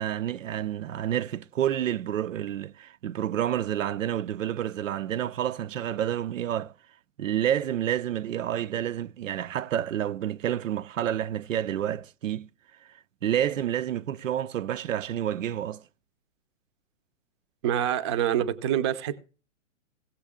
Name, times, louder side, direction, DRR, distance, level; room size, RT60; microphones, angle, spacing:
voice 1, 0.0-6.7 7.2-12.5 13.2-15.8, right 11 dB, 85° right, 0.6 m, -29 dB
voice 2, 17.6-19.2, right 10 dB, 25° right, 0.5 m, -26 dB
17.0 x 6.5 x 3.6 m
hypercardioid pair, 150°, 38 cm